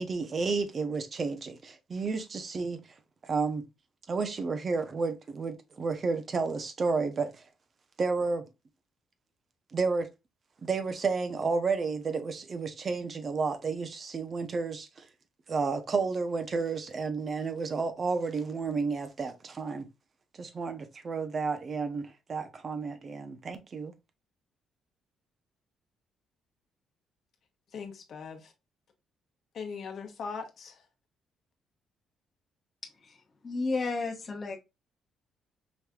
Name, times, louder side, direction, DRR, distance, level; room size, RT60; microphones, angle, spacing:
voice 1, 0.0-2.8 3.2-3.6 4.1-7.3 8.0-8.4 9.7-10.1 10.6-14.9 15.5-19.9 20.4-23.9, right 4 dB, 35° right, 0.8 m, -31 dB
voice 2, 27.7-28.5 29.5-30.8, left 5 dB, 55° left, 1.2 m, -40 dB
voice 3, 33.4-34.6, left 3 dB, 30° left, 1.1 m, -31 dB
5.1 x 3.1 x 2.4 m
cardioid pair, 120°, 0 cm